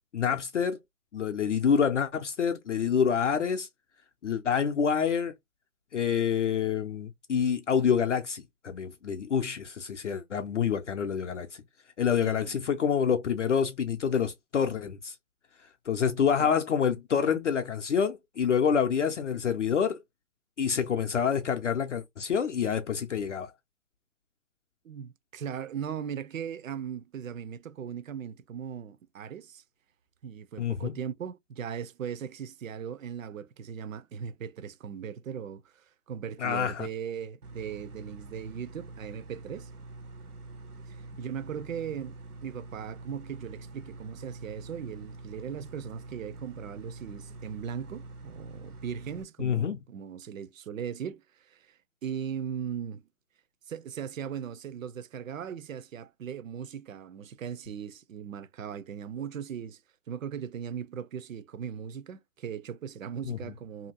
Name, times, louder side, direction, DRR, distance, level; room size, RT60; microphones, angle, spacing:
voice 1, 0.1-0.8 1.1-3.7 4.2-5.3 5.9-11.5 12.0-15.2 15.9-20.0 20.6-23.5 30.6-31.0 36.4-36.9 49.4-49.8 63.2-63.4, left 7 dB, 55° left, 0.5 m, -27 dB
voice 2, 12.2-12.6 16.4-16.5 24.8-29.6 30.2-39.7 40.9-53.0 53.7-59.8 60.1-63.9, right 8 dB, 65° right, 0.5 m, -38 dB
sound 1, 37.4-49.2, right 2 dB, 90° right, 0.8 m, -45 dB
2.7 x 2.5 x 2.6 m
figure-of-eight pair, 150°, 44 cm